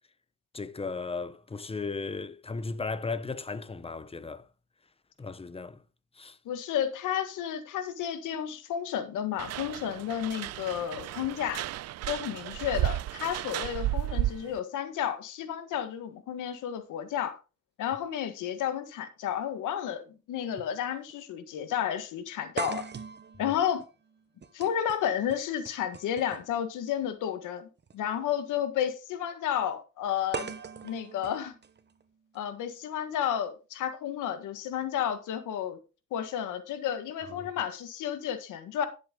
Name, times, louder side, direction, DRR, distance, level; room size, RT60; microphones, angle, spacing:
voice 1, 0.5-4.5 5.2-5.8 6.2-6.4 37.4-37.5, left 4 dB, 20° left, 1.0 m, -36 dB
voice 2, 6.5-11.7 12.1-17.4 17.8-20.0 20.3-22.9 23.4-23.9 24.5-30.5 30.8-31.5 32.3-35.8 36.1-38.9, left 9 dB, 85° left, 1.8 m, -32 dB
sound 1, 9.4-14.6, right 15 dB, 60° right, 0.4 m, -33 dB
sound 2, 19.4-19.5 20.6-20.8 21.1-21.2 22.6-26.6 27.8-27.9 30.3-32.4, right 5 dB, 35° right, 1.2 m, -41 dB
11.0 x 7.8 x 3.9 m
cardioid pair, 90°, 30 cm